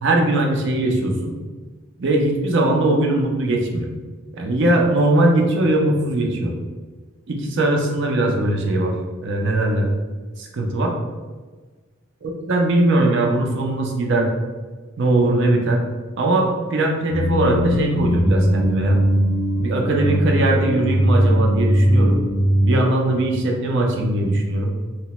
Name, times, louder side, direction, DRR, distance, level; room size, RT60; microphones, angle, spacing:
voice 1, 0.0-1.3 2.0-3.9 4.3-6.6 7.3-8.9 9.2-9.9 10.4-10.9 12.2-14.3 15.0-15.8 16.2-19.0 19.6-22.2 22.6-24.7, right 2 dB, 65° right, 1 dB, 0.5 m, -20 dB
sound 1, 17.1-22.8, equal, 30° left, 0.3 m, -19 dB
2.9 x 2.1 x 2.9 m, 1.4 s
head